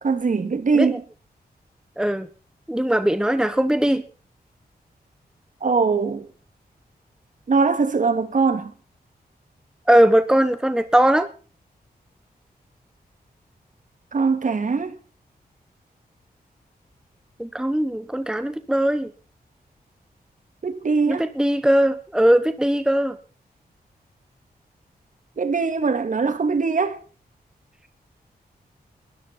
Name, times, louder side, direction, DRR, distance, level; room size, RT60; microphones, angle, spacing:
voice 1, 0.0-1.0 5.6-6.3 7.5-8.7 14.1-14.9 20.6-21.3 25.4-27.0, right 4 dB, 50° right, 2.3 m, -21 dB
voice 2, 2.0-2.3 2.7-4.0 9.9-11.3 17.4-19.1 21.1-23.2, right 1 dB, 5° right, 1.1 m, -20 dB
21.5 x 13.0 x 4.3 m
wide cardioid pair, 115°, 16 cm